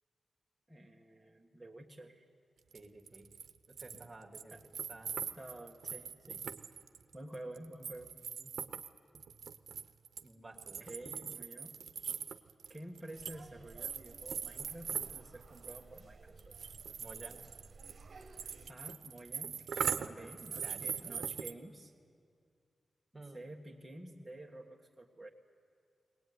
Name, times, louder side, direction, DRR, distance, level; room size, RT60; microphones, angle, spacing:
voice 1, 0.7-2.3 4.5-4.6 5.3-6.5 7.1-8.1 10.8-11.8 12.7-16.5 18.7-19.7 20.0-21.9 23.3-25.3, right 1 dB, 5° right, -3 dB, 1.5 m, -50 dB
voice 2, 2.7-3.3 3.7-4.6 4.9-5.3 8.4-8.5 10.2-10.9 17.0-17.5 20.0-20.3 20.6-21.1 23.1-23.5, right 2 dB, 25° right, 4 dB, 1.9 m, -53 dB
sound 1, 2.7-2.8 3.1-4.1 4.3-10.2 10.6-13.4 13.7-16.0 16.4-21.5, right 7 dB, 90° right, 0.8 m, -41 dB
sound 2, 13.1-18.7, right 3 dB, 50° right, 1.4 m, -56 dB
22.0 x 19.0 x 9.6 m, 2.2 s
wide cardioid pair, 110°, 0 cm